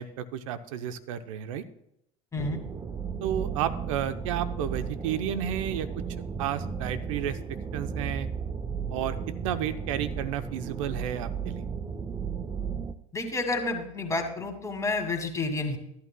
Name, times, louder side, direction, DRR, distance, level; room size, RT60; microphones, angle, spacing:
voice 1, 0.0-1.6 3.2-5.9 6.4-7.4 7.7-8.3 8.9-9.2 9.4-11.6, right 10 dB, 75° right, 11 dB, 0.8 m, -32 dB
sound 1, 2.4-12.9, right 6 dB, 20° right, 0.6 m, -34 dB
voice 2, 13.1-15.8, left 3 dB, 20° left, 3 dB, 2.2 m, -30 dB
13.5 x 11.5 x 2.2 m, 0.79 s
hypercardioid pair, 85°, 17 cm